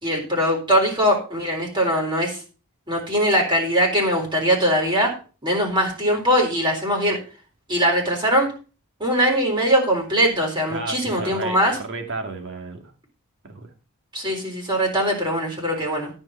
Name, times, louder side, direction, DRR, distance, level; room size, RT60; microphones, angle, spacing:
voice 1, 0.0-2.4 2.9-5.1 5.4-7.2 7.7-8.5 9.0-11.8 14.1-16.1, equal, 20° right, 0 dB, 3.8 m, -21 dB
voice 2, 10.7-12.9 13.4-13.7, right 3 dB, 55° right, 4 dB, 2.2 m, -32 dB
13.5 x 5.4 x 5.6 m, 0.37 s
head